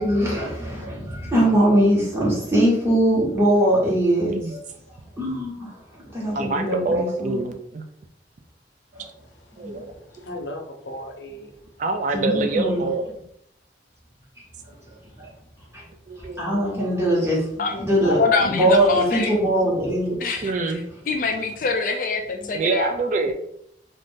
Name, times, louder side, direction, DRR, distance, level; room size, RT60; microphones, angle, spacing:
voice 1, 0.0-4.6 5.2-5.8 6.1-7.5 8.9-9.1 9.6-9.8 12.1-12.9 14.7-15.3 15.7-15.8 16.2-20.2, right 1 dB, 15° right, -6 dB, 1.1 m, -22 dB
voice 2, 0.6-1.1 4.2-4.5 6.2-7.9 9.6-9.9 11.8-13.0 16.1-16.6 20.4-20.8 22.5-23.3, right 3 dB, 45° right, 6 dB, 0.3 m, -26 dB
voice 3, 4.9-5.2 6.1-6.4 9.1-11.7 14.6-16.4, left 1 dB, 90° left, 2 dB, 0.7 m, -41 dB
voice 4, 18.0-19.4 20.2-22.9, left 4 dB, 50° left, 4 dB, 0.4 m, -25 dB
2.5 x 2.5 x 3.6 m, 0.72 s
head